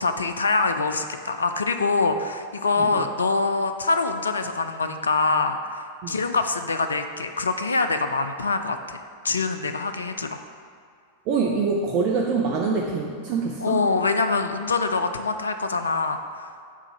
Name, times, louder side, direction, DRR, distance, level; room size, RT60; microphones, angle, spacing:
voice 1, 0.0-9.0 9.2-10.4 13.6-16.5, left 3 dB, 75° left, 8 dB, 0.3 m, -24 dB
voice 2, 11.3-13.8, right 4 dB, 40° right, -1 dB, 0.5 m, -25 dB
4.8 x 3.8 x 5.7 m, 2.2 s
figure-of-eight pair, 90°, 0 cm